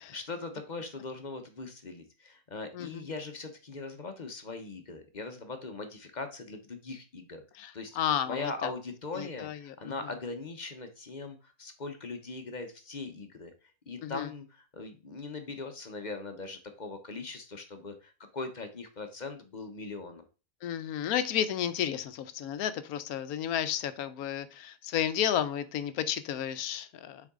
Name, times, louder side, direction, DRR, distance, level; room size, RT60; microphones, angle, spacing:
voice 1, 0.1-7.4 7.7-8.0 8.3-13.5 13.9-20.2, left 3 dB, 35° left, 0.9 m, -40 dB
voice 2, 7.6-8.7 9.2-9.9 14.0-14.3 20.6-27.2, left 10 dB, 90° left, 1.1 m, -32 dB
6.8 x 4.7 x 3.6 m
omnidirectional pair, 1.5 m